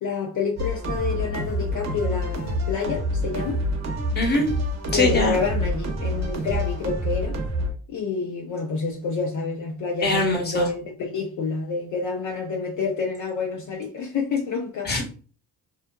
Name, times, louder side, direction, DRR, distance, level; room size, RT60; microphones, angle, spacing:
voice 1, 0.0-3.6 4.9-7.4 7.9-15.0, left 4 dB, 55° left, 0.5 m, -28 dB
sound 1, 0.6-7.7, equal, 45° right, 0.7 m, -27 dB
voice 2, 4.1-4.5 4.9-5.4 10.0-10.7 14.8-15.0, left 2 dB, 25° left, 1.0 m, -22 dB
2.5 x 2.4 x 2.2 m
cardioid pair, 80°, 37 cm